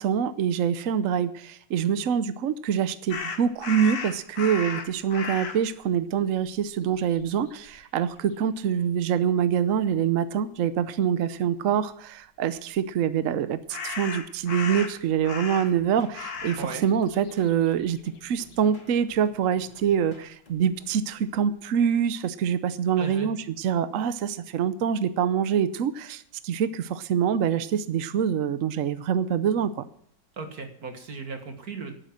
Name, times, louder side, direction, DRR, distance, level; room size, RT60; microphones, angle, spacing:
voice 1, 0.0-29.7, right 8 dB, 70° right, 13 dB, 0.7 m, -25 dB
sound 1, 3.1-5.6 6.5-6.6 6.9-7.8 13.7-15.9 16.1-16.7 16.9-18.5, left 5 dB, 50° left, 1.7 m, -35 dB
sound 2, 15.7-21.1, left 1 dB, 25° left, 2.3 m, -53 dB
voice 2, 23.0-23.3 30.4-31.9, right 4 dB, 45° right, 5 dB, 2.2 m, -36 dB
11.5 x 9.3 x 7.6 m, 0.63 s
omnidirectional pair, 2.2 m